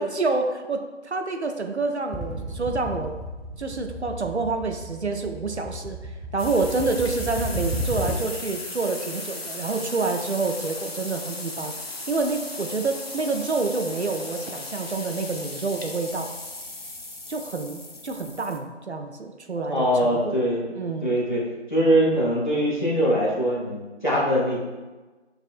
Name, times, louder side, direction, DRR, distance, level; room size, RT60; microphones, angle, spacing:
voice 1, 0.0-3.1 3.6-11.7 12.1-16.3 17.3-20.4 20.7-21.1, right 3 dB, 65° right, 5 dB, 0.5 m, -28 dB
sound 1, 2.1-8.5, right 1 dB, ahead, 0.4 m, -33 dB
sound 2, 6.4-18.6, left 2 dB, 55° left, 0.5 m, -37 dB
voice 2, 19.6-20.6 21.0-21.4 21.7-24.6, equal, 40° left, -5 dB, 1.0 m, -22 dB
6.6 x 2.5 x 2.4 m, 1.2 s
figure-of-eight pair, 175°, 36 cm